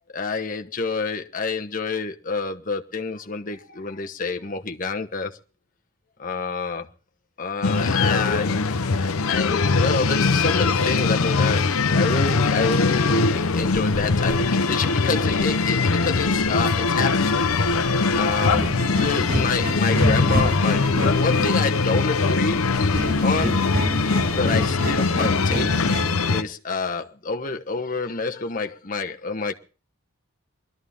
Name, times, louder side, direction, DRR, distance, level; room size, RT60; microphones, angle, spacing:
voice 1, 0.1-5.4 6.2-6.9 7.4-17.3 18.1-22.6 23.2-23.7 24.3-25.8 26.2-29.5, left 4 dB, 40° left, 1.1 m, -28 dB
sound 1, 7.6-26.4, left 4 dB, 80° left, 0.8 m, -21 dB
sound 2, 17.4-26.3, left 1 dB, 45° right, 5.6 m, -28 dB
22.0 x 13.0 x 3.6 m
head